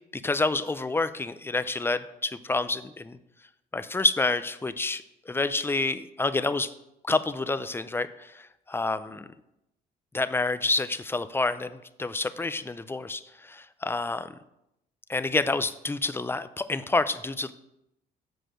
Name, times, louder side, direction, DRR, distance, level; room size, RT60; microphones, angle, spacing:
voice 1, 0.1-3.2 3.7-6.7 7.1-9.3 10.1-14.3 15.1-17.5, left 3 dB, 10° left, 12 dB, 0.5 m, -28 dB
7.9 x 4.9 x 6.2 m, 0.86 s
supercardioid pair, 80°, 19 cm